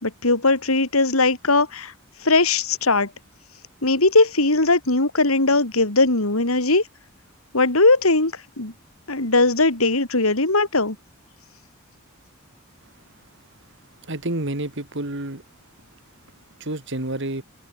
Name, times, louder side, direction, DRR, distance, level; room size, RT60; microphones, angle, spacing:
voice 1, 0.0-1.9 2.2-3.1 3.8-6.8 7.5-8.7 9.1-11.0, left 3 dB, 90° left, 3.8 m, -19 dB
voice 2, 14.1-15.4 16.6-17.4, right 1 dB, 60° right, 3.0 m, -29 dB
head